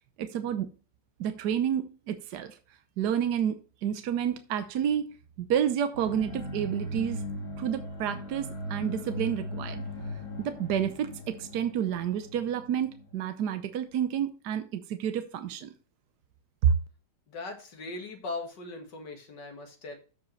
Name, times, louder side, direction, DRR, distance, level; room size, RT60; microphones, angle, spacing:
voice 1, 0.2-0.7 1.2-2.6 3.0-3.6 3.8-5.1 5.4-7.2 7.6-9.8 10.4-15.7 16.6-16.7, right 9 dB, 75° right, 1.3 m, -29 dB
sound 1, 5.9-13.7, left 1 dB, 60° left, 4.6 m, -38 dB
voice 2, 17.3-20.0, left 3 dB, 85° left, 2.4 m, -39 dB
13.5 x 5.0 x 3.2 m
omnidirectional pair, 1.8 m